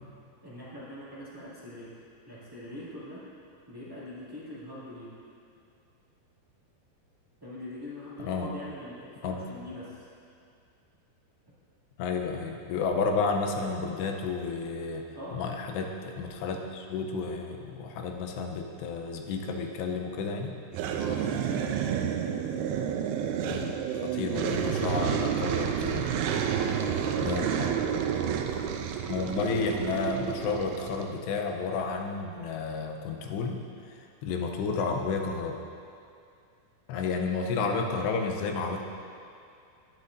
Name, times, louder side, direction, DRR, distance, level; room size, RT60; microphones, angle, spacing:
voice 1, 0.4-1.9 2.2-3.2 3.7-5.1 7.4-10.1 15.1-15.6 20.9-22.2 26.6-28.6, left 1 dB, 15° right, -11 dB, 0.7 m, -42 dB
voice 2, 12.0-15.0 15.3-20.6 23.5-26.1 27.2-27.7 29.1-33.6 34.2-35.6 36.9-38.8, left 4 dB, 85° left, 3 dB, 3.0 m, -31 dB
sound 1, 20.7-31.1, right 8 dB, 85° right, 2.5 m, -30 dB
20.5 x 8.1 x 2.7 m, 2.5 s
omnidirectional pair, 4.9 m